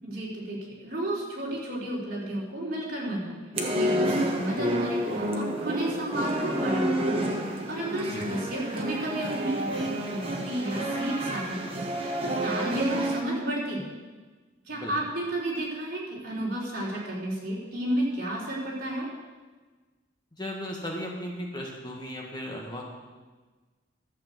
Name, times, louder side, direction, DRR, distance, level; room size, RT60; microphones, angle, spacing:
voice 1, 0.0-3.4 3.7-7.1 7.7-13.9 14.7-19.1, right 1 dB, 50° right, -5 dB, 3.7 m, -32 dB
sound 1, 3.5-13.2, right 1 dB, 30° right, 1.3 m, -29 dB
voice 2, 20.4-22.8, equal, 20° left, -1 dB, 1.8 m, -36 dB
12.5 x 6.8 x 7.8 m, 1.3 s
head